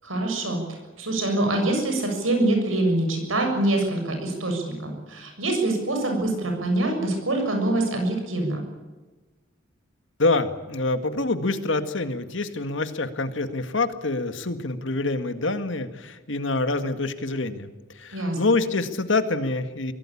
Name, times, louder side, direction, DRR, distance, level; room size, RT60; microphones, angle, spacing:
voice 1, 0.0-8.6 18.1-18.4, right 2 dB, 90° right, 3 dB, 7.1 m, -25 dB
voice 2, 10.2-17.7 18.0-19.9, left 3 dB, 70° left, 9 dB, 1.9 m, -26 dB
23.5 x 17.5 x 8.7 m, 1.2 s
head